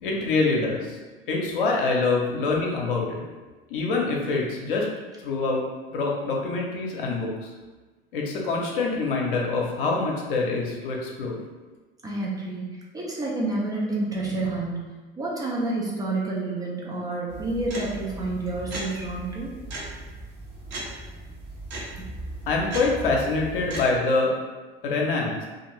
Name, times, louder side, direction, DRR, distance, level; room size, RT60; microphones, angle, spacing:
voice 1, 0.0-1.0 1.3-3.2 3.7-4.9 5.2-5.6 5.9-7.5 8.1-11.4 22.5-24.3 24.8-25.5, left 3 dB, 60° left, -1 dB, 0.7 m, -25 dB
voice 2, 12.0-12.7 12.9-14.9 15.2-19.5, right 2 dB, 15° right, -4 dB, 0.4 m, -29 dB
sound 1, 17.3-24.0, right 1 dB, 40° right, 0.9 m, -37 dB
2.5 x 2.4 x 3.0 m, 1.3 s
figure-of-eight pair, 75°, 30 cm